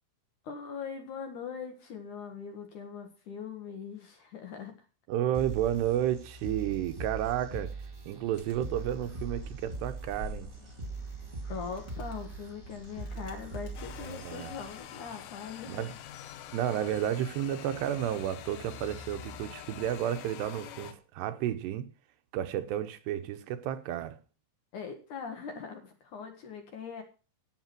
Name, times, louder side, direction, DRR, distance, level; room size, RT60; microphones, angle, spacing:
voice 1, 0.4-4.8 11.5-15.9 24.7-27.0, left 6 dB, 55° left, 2.6 m, -41 dB
voice 2, 5.1-7.8 8.1-10.5 14.0-14.5 15.7-15.9 16.5-21.9 22.3-24.2, right 11 dB, 80° right, 3.0 m, -32 dB
sound 1, 5.3-14.3, right 3 dB, 15° right, 2.2 m, -41 dB
Animal, 8.3-14.8, right 1 dB, 30° left, 2.6 m, -48 dB
sound 2, 13.8-20.9, left 9 dB, 70° left, 2.5 m, -45 dB
13.5 x 8.7 x 6.0 m
omnidirectional pair, 5.0 m